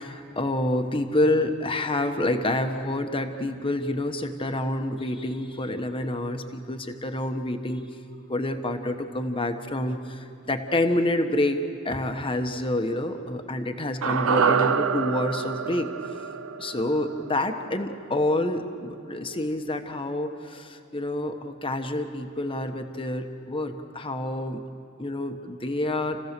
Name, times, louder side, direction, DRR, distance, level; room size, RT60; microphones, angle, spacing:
voice 1, 0.0-7.8 8.3-15.9 16.6-24.6 25.0-26.2, left 1 dB, 25° left, 6 dB, 1.2 m, -28 dB
sound 1, 14.0-18.3 18.6-18.7, right 6 dB, 80° right, 0.7 m, -27 dB
29.0 x 15.5 x 6.8 m, 2.5 s
head